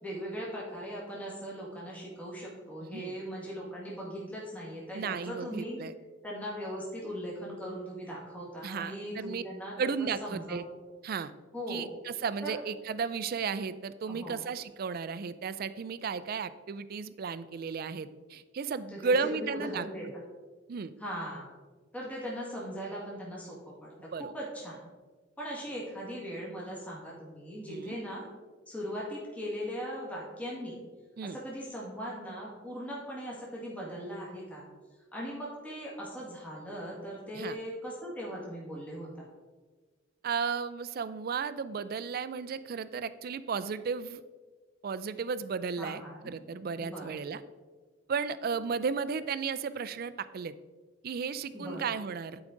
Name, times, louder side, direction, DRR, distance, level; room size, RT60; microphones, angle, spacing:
voice 1, 0.0-5.8 6.2-10.6 11.5-11.9 12.4-12.6 14.1-14.4 18.9-20.0 21.0-21.5 21.9-24.8 25.4-28.3 28.7-30.8 31.2-34.7 35.1-39.3 45.8-46.3 46.8-47.1 51.5-51.8, equal, 10° left, -5 dB, 1.7 m, -39 dB
voice 2, 4.9-5.9 8.6-9.4 9.8-10.6 11.0-11.3 11.7-19.9 20.7-20.9 24.1-24.3 27.7-28.0 31.2-31.4 37.4-37.6 40.2-44.2 44.8-47.4 48.1-50.5 51.0-52.4, right 5 dB, 50° right, 15 dB, 0.4 m, -34 dB
11.0 x 5.0 x 3.8 m, 1.4 s
head